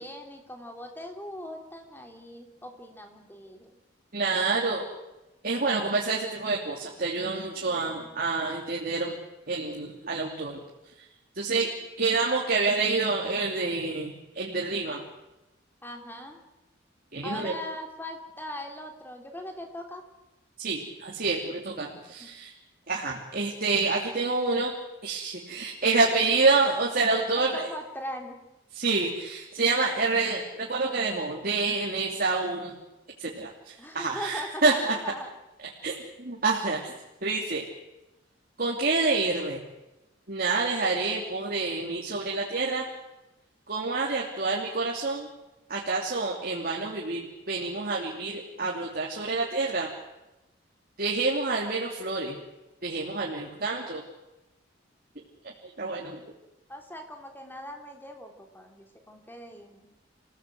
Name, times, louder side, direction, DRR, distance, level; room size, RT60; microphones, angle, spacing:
voice 1, 0.0-3.8 7.5-8.1 15.8-16.4 17.2-20.0 22.2-22.3 27.5-28.4 33.8-35.3 56.7-59.9, left 1 dB, 10° left, 3 dB, 3.3 m, -40 dB
voice 2, 4.1-4.9 5.4-9.2 9.5-10.6 11.3-11.7 12.0-15.0 17.1-17.6 20.6-22.5 22.9-24.7 25.0-27.7 28.7-32.7 33.2-34.9 35.8-36.9 37.2-37.6 38.6-39.6 40.3-42.9 43.7-45.3 45.7-49.9 51.0-52.4 52.8-54.0 55.8-56.2, right 3 dB, 50° right, -2 dB, 2.9 m, -28 dB
28.5 x 17.0 x 7.8 m, 1.0 s
head